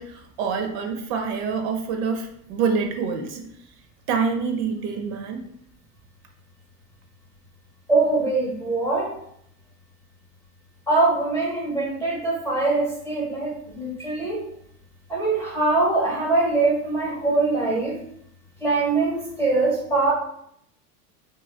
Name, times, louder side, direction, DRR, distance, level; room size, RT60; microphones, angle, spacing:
voice 1, 0.0-3.5 4.1-5.4, right 5 dB, 45° right, 5 dB, 0.5 m, -26 dB
voice 2, 7.9-9.1 10.9-14.4 15.1-18.0 18.6-20.1, right 3 dB, 5° left, -4 dB, 0.4 m, -22 dB
2.8 x 2.3 x 2.8 m, 0.73 s
hypercardioid pair, 85°, 48 cm